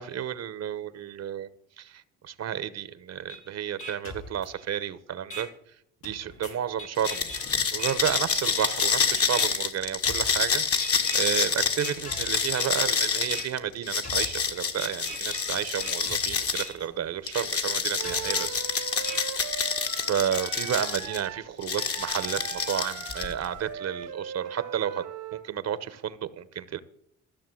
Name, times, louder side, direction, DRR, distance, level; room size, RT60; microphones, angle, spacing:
voice 1, 0.0-1.5 1.8-1.9 2.2-5.5 6.0-7.4 7.7-10.6 11.1-18.6 20.1-25.0 25.3-26.8, right 9 dB, 60° right, 1.0 m, -31 dB
sound 1, 3.3-3.4 3.8-4.8 5.3-5.4 6.0-8.9 9.3-9.4 10.0-10.5 10.8-11.4 11.8-12.8 13.3-13.4 14.0-16.9 17.3-17.4 18.0-19.2, equal, 85° left, 4.9 m, -40 dB
sound 2, 7.0-16.7 17.3-21.2 21.6-23.4, left 5 dB, 50° left, 1.8 m, -28 dB
Wind instrument woodwind instrument, 18.0-25.4, right 9 dB, 85° right, 1.3 m, -39 dB
14.0 x 6.6 x 7.8 m
cardioid pair, 90°, 30 cm